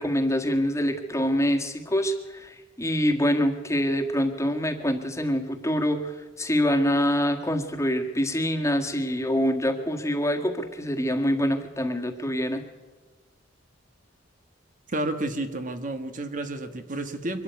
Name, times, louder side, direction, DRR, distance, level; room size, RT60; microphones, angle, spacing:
voice 1, 0.0-12.6, equal, 15° left, 4 dB, 1.8 m, -25 dB
voice 2, 14.9-17.4, right 2 dB, 45° right, 8 dB, 1.4 m, -31 dB
23.5 x 12.5 x 9.4 m, 1.3 s
head